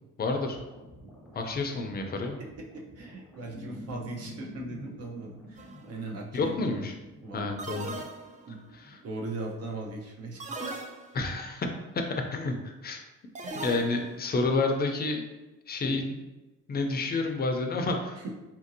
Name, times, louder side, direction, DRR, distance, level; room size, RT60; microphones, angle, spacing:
voice 1, 0.2-0.6 1.3-2.4 6.3-6.9 7.3-7.9 8.7-9.0 11.1-11.7 12.1-13.0 13.6-15.2 15.7-16.2 16.7-18.2, left 3 dB, 30° left, 4 dB, 0.5 m, -29 dB
sound 1, 0.5-10.0, equal, ahead, 0.8 m, -49 dB
voice 2, 2.6-5.6 5.9-6.8 7.2-7.6 8.5-8.6 9.0-10.7 18.2-18.3, right 2 dB, 55° right, -1 dB, 0.8 m, -39 dB
sound 2, 5.6-5.9 7.6-8.6 10.4-11.4 13.4-14.3, right 2 dB, 25° right, 0.4 m, -38 dB
2.8 x 2.6 x 2.6 m, 1.1 s
cardioid pair, 90°, 30 cm